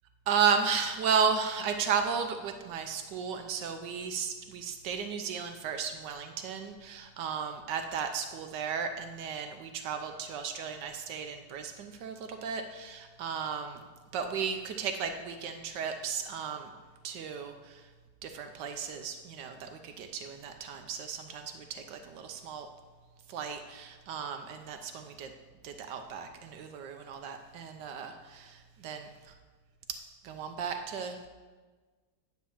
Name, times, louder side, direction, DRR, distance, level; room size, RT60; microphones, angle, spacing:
voice 1, 0.3-13.9 14.1-16.7 17.0-17.8 18.2-22.7 23.3-25.3 25.6-29.3 30.2-31.3, right 6 dB, 80° right, 6 dB, 1.3 m, -34 dB
9.4 x 4.1 x 7.0 m, 1.4 s
omnidirectional pair, 1.9 m